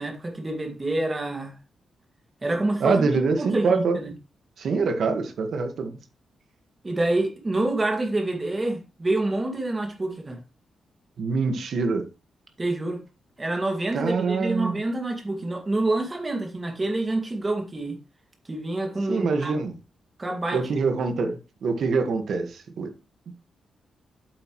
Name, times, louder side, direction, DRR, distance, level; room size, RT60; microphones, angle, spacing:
voice 1, 0.0-1.5 2.4-4.1 6.8-10.4 12.6-13.0 13.4-18.0 18.5-19.6 20.2-20.9, right 2 dB, 15° right, 2.1 m, -27 dB
voice 2, 2.8-4.0 4.6-6.0 11.2-12.1 13.9-14.8 19.1-19.7 20.5-22.9, right 4 dB, 55° right, 1.7 m, -25 dB
8.2 x 7.8 x 3.2 m
wide cardioid pair, 170°, 0 cm